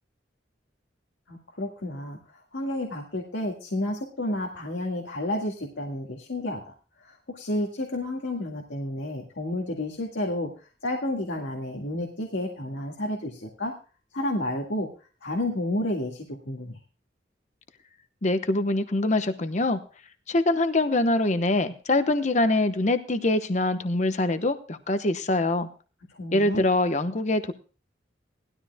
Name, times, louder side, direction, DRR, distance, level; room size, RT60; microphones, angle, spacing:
voice 1, 1.3-10.5 10.8-13.7 14.1-14.9 15.2-16.8 26.1-26.6, left 1 dB, 90° left, 0 dB, 1.9 m, -31 dB
voice 2, 18.2-19.8 20.3-25.7 26.3-27.5, left 2 dB, 40° left, 9 dB, 0.9 m, -24 dB
19.0 x 13.0 x 2.2 m, 0.35 s
head